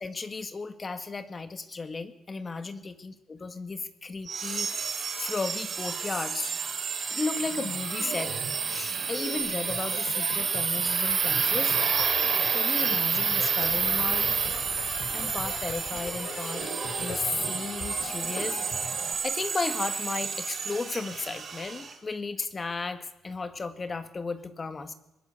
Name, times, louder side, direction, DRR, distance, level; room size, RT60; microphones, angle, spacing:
voice 1, 0.0-4.9 5.2-6.5 7.1-8.3 8.7-11.8 12.5-14.4 15.1-16.6 17.0-18.6 19.2-24.9, left 4 dB, 30° left, 9 dB, 1.8 m, -34 dB
sound 1, 4.3-21.9, right 6 dB, 50° right, 4.6 m, -29 dB
sound 2, 9.7-19.1, left 5 dB, 55° left, 3.4 m, -41 dB
21.0 x 20.0 x 8.4 m, 0.96 s
cardioid pair, 90°, 0 cm